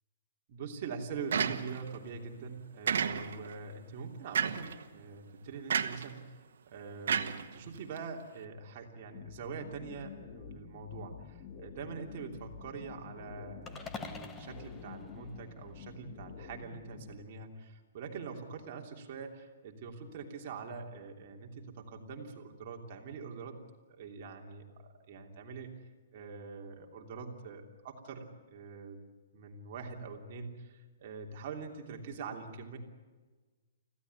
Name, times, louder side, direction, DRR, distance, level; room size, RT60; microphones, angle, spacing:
voice 1, 0.5-23.6 24.0-24.6 25.1-25.7 26.1-29.0 29.3-32.8, right 5 dB, 40° right, 2 dB, 3.1 m, -44 dB
sound 1, 1.3-2.0 2.9-3.5 4.3-4.8 5.7-6.1 7.1-8.0, right 7 dB, 75° right, 1.5 m, -31 dB
sound 2, 9.1-17.1, left 6 dB, 35° left, 2.1 m, -49 dB
sound 3, 13.7-16.0, left 4 dB, 10° left, 1.4 m, -46 dB
25.0 x 16.0 x 9.5 m, 1.3 s
hypercardioid pair, 165°, 0 cm